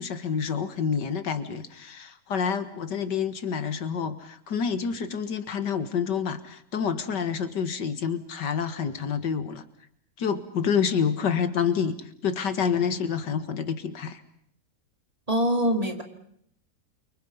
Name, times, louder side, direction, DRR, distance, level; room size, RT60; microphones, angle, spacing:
voice 1, 0.0-9.6 10.2-14.2, left 6 dB, 85° left, 11 dB, 2.2 m, -28 dB
voice 2, 15.3-16.0, equal, 20° right, 4 dB, 2.8 m, -24 dB
29.5 x 24.0 x 5.6 m, 0.69 s
omnidirectional pair, 1.8 m